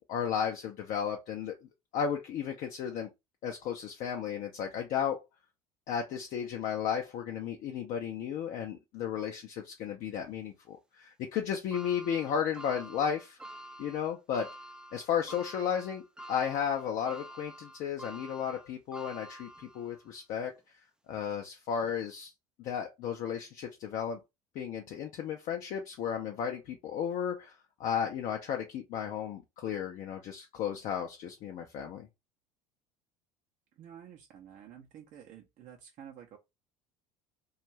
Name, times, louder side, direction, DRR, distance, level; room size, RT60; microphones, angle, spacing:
voice 1, 0.1-1.5 1.9-3.1 3.4-5.2 5.9-13.4 13.8-14.5 14.9-16.0 16.3-20.5 21.1-22.3 22.6-24.2 24.5-32.1, left 8 dB, 45° left, 0.5 m, -34 dB
sound 1, 11.7-20.1 20.6-20.7 21.8-21.9, right 1 dB, 5° right, 0.3 m, -48 dB
voice 2, 33.8-36.4, right 9 dB, 45° right, 0.6 m, -50 dB
2.5 x 2.3 x 3.1 m
figure-of-eight pair, 70°, 19 cm